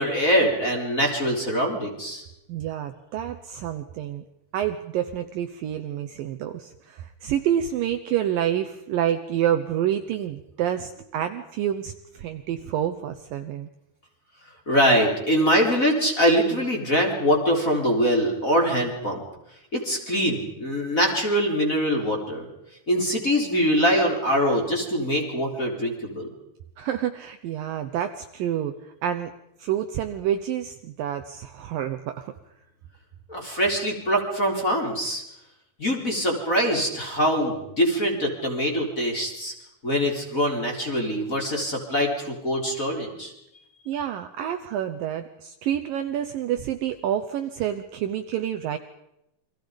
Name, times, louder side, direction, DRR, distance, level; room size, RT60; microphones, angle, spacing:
voice 1, 0.0-2.2 14.7-19.2 19.7-22.5 22.9-26.3 33.3-35.2 35.8-39.5 39.8-43.3, equal, 20° left, 1 dB, 3.7 m, -23 dB
voice 2, 2.5-4.2 4.5-13.7 26.8-29.3 29.6-32.3 43.9-48.8, right 10 dB, 85° right, 7 dB, 1.9 m, -28 dB
29.0 x 24.0 x 5.3 m, 0.85 s
omnidirectional pair, 5.4 m